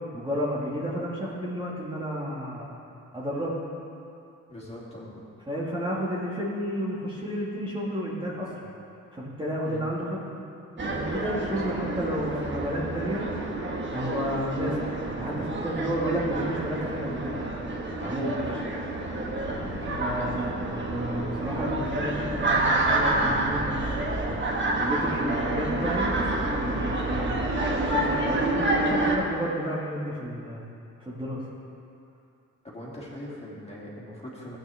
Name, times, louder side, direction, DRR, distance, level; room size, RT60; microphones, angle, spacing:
voice 1, 0.1-2.7 3.1-3.6 5.5-8.5 9.1-10.3 10.9-13.3 13.9-17.4 18.0-18.6 20.0-24.4 24.8-27.4 27.8-30.7 31.0-31.4, equal, 15° right, -6 dB, 2.0 m, -31 dB
voice 2, 4.5-5.2 9.6-9.8 11.7-11.8 18.1-18.3 19.6-19.7 32.6-34.6, left 1 dB, 20° left, -5 dB, 2.7 m, -41 dB
sound 1, 10.8-29.2, right 2 dB, 40° right, 1.5 m, -28 dB
sound 2, 19.3-24.5, left 1 dB, 45° left, 2.0 m, -38 dB
14.0 x 8.8 x 3.5 m, 2.6 s
cardioid pair, 90°, 30 cm